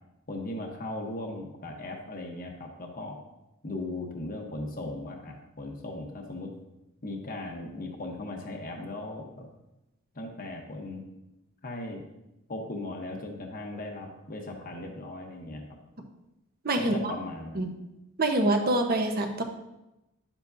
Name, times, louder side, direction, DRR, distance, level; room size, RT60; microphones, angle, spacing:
voice 1, 0.3-3.2 3.6-6.5 7.0-9.5 10.1-11.0 11.6-12.0 12.5-15.6 16.8-17.7, left 2 dB, 40° left, 2 dB, 1.0 m, -37 dB
voice 2, 16.6-17.1 17.5-17.7 18.2-19.4, right 2 dB, 45° right, 4 dB, 1.0 m, -25 dB
10.5 x 7.3 x 2.7 m, 0.93 s
head